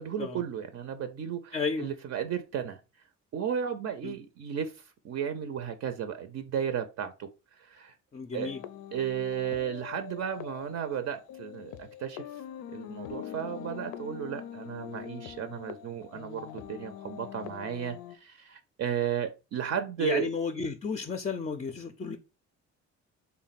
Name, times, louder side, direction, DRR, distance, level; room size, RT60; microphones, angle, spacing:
voice 1, 0.0-2.8 3.3-4.7 5.0-7.9 8.3-8.5 8.9-12.3 12.7-20.3, right 8 dB, 60° right, 0.5 m, -34 dB
voice 2, 1.5-1.9 4.0-4.2 8.1-8.6 20.0-22.2, left 4 dB, 25° left, 0.4 m, -32 dB
sound 1, 8.4-18.2, left 10 dB, 80° left, 0.5 m, -43 dB
3.5 x 2.2 x 4.0 m
cardioid pair, 90°, 30 cm